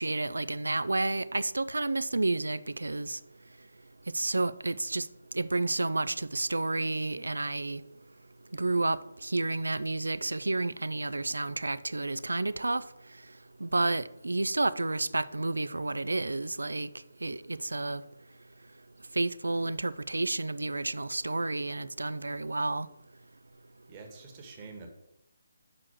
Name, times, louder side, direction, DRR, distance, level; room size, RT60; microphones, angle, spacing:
voice 1, 0.0-3.2 4.1-5.1 5.3-7.8 8.5-12.8 13.6-16.9 17.2-18.0 19.1-22.9, right 2 dB, 75° right, 0.4 m, -30 dB
voice 2, 23.9-24.9, right 4 dB, 25° right, 1.3 m, -46 dB
6.2 x 4.4 x 6.3 m
figure-of-eight pair, 145°, 0 cm